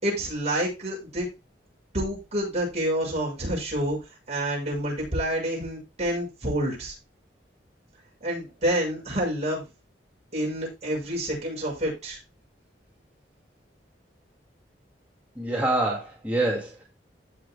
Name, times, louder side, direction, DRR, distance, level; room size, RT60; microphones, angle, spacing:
voice 1, 0.0-1.3 1.9-4.0 4.3-6.9 8.2-9.7 10.3-12.2, right 1 dB, 40° right, -2 dB, 6.1 m, -28 dB
voice 2, 15.4-16.8, right 2 dB, 10° right, -4 dB, 2.3 m, -26 dB
15.5 x 6.3 x 2.2 m, 0.26 s
head